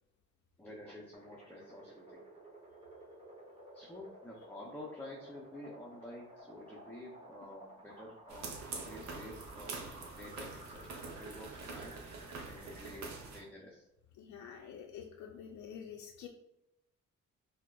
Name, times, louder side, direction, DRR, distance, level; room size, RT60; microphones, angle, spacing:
voice 1, 0.6-2.2 3.7-13.8, left 1 dB, 5° left, -3 dB, 0.5 m, -50 dB
sound 1, 1.1-13.1, right 1 dB, 20° right, 1.3 m, -55 dB
sound 2, 8.3-13.4, right 4 dB, 65° right, 0.7 m, -45 dB
voice 2, 14.2-16.3, left 8 dB, 70° left, 0 dB, 0.5 m, -48 dB
4.4 x 2.0 x 2.3 m, 0.85 s
cardioid pair, 90°, 30 cm